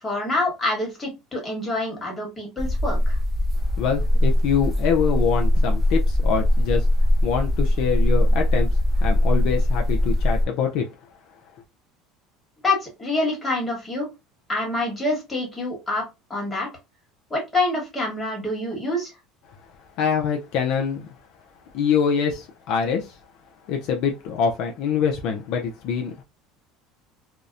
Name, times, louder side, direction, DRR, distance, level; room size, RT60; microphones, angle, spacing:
voice 1, 0.0-3.2 12.6-14.0 14.5-16.0 16.3-16.7 17.3-19.1, left 2 dB, 15° left, 1.3 m, -26 dB
sound 1, 2.6-10.5, left 1 dB, 25° right, 0.7 m, -21 dB
voice 2, 3.8-6.9 7.2-8.7 9.0-10.9 20.0-21.1 21.7-23.2 23.7-26.2, left 6 dB, 65° left, 0.4 m, -24 dB
2.7 x 2.0 x 2.4 m
supercardioid pair, 125°, 0 cm